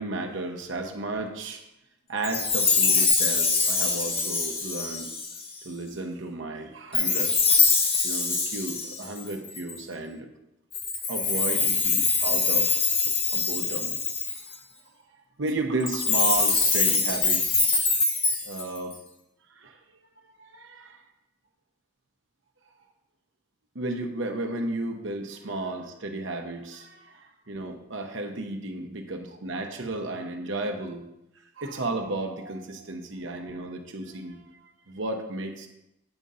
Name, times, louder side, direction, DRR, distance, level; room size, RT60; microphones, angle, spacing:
voice 1, 0.0-1.6 2.1-5.1 5.6-7.4 8.0-10.3 11.1-12.9 13.3-14.0 14.3-14.5 15.4-17.8 18.4-19.0 19.5-19.8 20.4-21.0 23.7-31.0 31.6-34.4 34.9-35.7, right 2 dB, 70° right, 4 dB, 0.9 m, -33 dB
Chime, 2.2-5.6 6.9-9.8 10.7-14.5 15.8-18.9, left 4 dB, 30° left, 0.8 m, -24 dB
9.0 x 3.7 x 5.5 m, 0.87 s
head